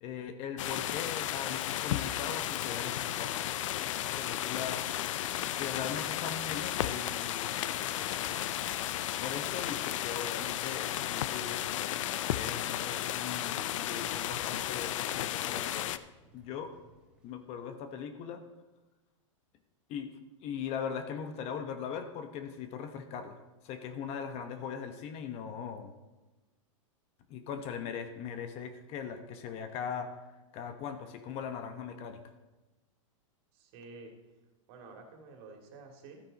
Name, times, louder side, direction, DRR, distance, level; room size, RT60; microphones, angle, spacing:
voice 1, 0.0-4.8 5.6-8.0 9.2-11.6 12.4-16.0 16.3-16.7 17.2-18.4 19.9-20.1 20.4-25.9 27.3-30.2 30.5-32.2, left 7 dB, 40° left, 8 dB, 1.0 m, -40 dB
sound 1, 0.6-16.0, left 12 dB, 65° left, 0.5 m, -34 dB
sound 2, 6.3-18.0, right 1 dB, 5° right, 1.9 m, -61 dB
voice 2, 33.5-34.1 34.7-36.3, right 3 dB, 50° right, 3 dB, 2.4 m, -50 dB
13.0 x 8.9 x 4.0 m, 1.1 s
hypercardioid pair, 130°, 17 cm